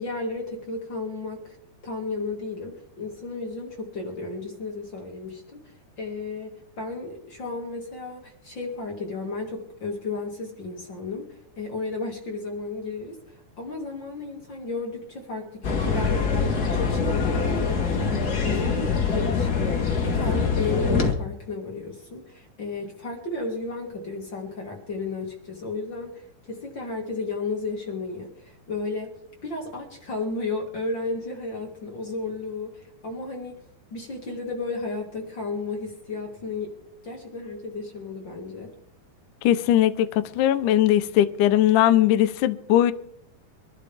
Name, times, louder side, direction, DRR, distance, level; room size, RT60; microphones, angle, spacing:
voice 1, 0.0-1.6 1.8-11.3 11.6-29.2 29.4-33.6 33.9-36.7 37.0-38.7, left 3 dB, 35° left, 2.2 m, -33 dB
sound 1, 15.6-21.1, left 5 dB, 65° left, 0.9 m, -24 dB
voice 2, 39.4-40.1 40.4-42.9, left 12 dB, 90° left, 1.8 m, -19 dB
24.5 x 12.0 x 3.6 m
omnidirectional pair, 4.9 m